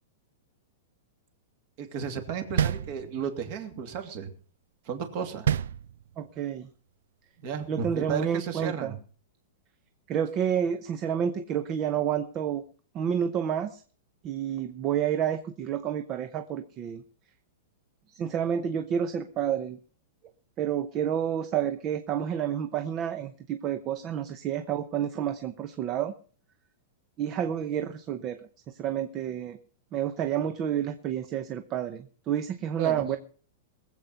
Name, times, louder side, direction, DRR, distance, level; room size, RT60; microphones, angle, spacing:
voice 1, 1.8-4.3 4.9-5.5 7.4-9.0 32.8-33.1, right 7 dB, 40° right, 6 dB, 2.6 m, -33 dB
sound 1, 2.6-3.5 5.4-6.4, right 9 dB, 80° right, 0.6 m, -28 dB
voice 2, 6.2-6.7 7.7-8.9 10.1-12.6 12.9-13.8 14.2-17.0 18.1-19.8 20.6-26.1 27.2-28.4 28.8-29.6 29.9-33.2, right 9 dB, 25° right, 9 dB, 0.8 m, -29 dB
20.5 x 7.9 x 5.7 m, 0.43 s
supercardioid pair, 165°, 0 cm